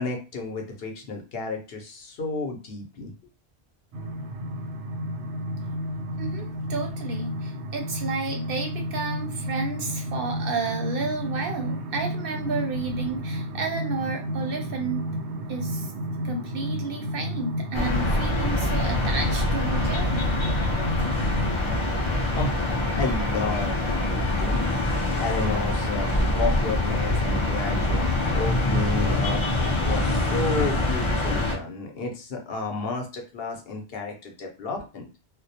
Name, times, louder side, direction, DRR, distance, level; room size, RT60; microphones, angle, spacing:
voice 1, 0.0-3.1 22.4-22.7 22.9-24.7 25.2-26.1 26.4-29.5 29.8-35.1, left 3 dB, 65° left, 2 dB, 0.8 m, -31 dB
sound 1, 3.9-21.6, equal, 90° right, 0.9 m, -31 dB
voice 2, 6.2-15.1 15.5-15.9 16.2-20.3, right 4 dB, 65° right, 3 dB, 0.7 m, -31 dB
sound 2, 17.7-31.6, left 2 dB, 45° left, 0.4 m, -25 dB
2.2 x 2.0 x 2.7 m, 0.32 s
omnidirectional pair, 1.1 m